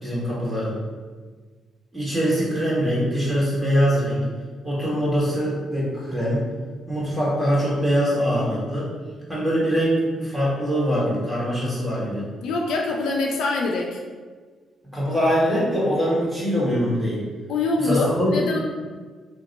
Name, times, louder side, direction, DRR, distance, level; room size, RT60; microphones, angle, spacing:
voice 1, 0.0-0.7 1.9-4.2 4.6-6.4 6.9-8.9 9.3-12.3 14.9-17.2 17.8-18.3, equal, ahead, -8 dB, 1.5 m, -23 dB
voice 2, 12.4-14.0 17.5-18.6, left 3 dB, 80° left, 0 dB, 0.4 m, -24 dB
2.8 x 2.1 x 4.0 m, 1.5 s
supercardioid pair, 70°, 0 cm